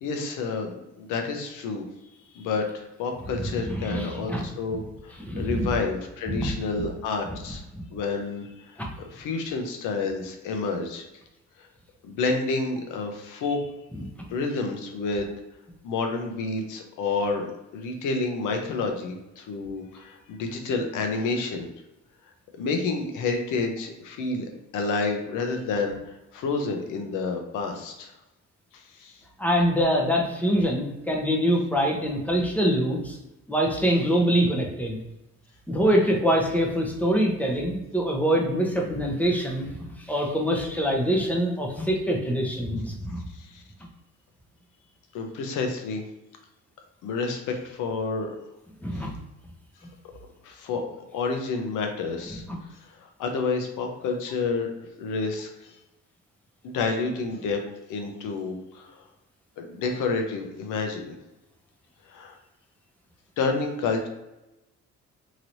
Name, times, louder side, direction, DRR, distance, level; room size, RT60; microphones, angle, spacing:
voice 1, 0.0-1.8 2.3-7.6 7.9-11.1 11.6-11.7 12.0-13.7 14.3-15.3 15.8-17.5 17.7-21.7 22.6-28.1 28.7-29.2 43.3-43.6 45.1-46.0 47.0-48.3 48.9-49.1 50.4-50.8 51.1-52.4 53.0-54.7 55.0-55.7 56.6-57.6 57.9-59.0 59.6-61.2 62.1-62.4 63.4-64.1, left 4 dB, 85° left, 4 dB, 0.7 m, -29 dB
voice 2, 3.3-4.4 5.2-5.7 6.3-6.5 7.7-7.8 8.8-8.9 29.4-33.2 33.5-35.0 35.7-43.2 48.8-49.1 52.5-52.6, equal, 5° left, -1 dB, 0.8 m, -24 dB
3.0 x 2.9 x 2.6 m, 0.96 s
cardioid pair, 90°, 30 cm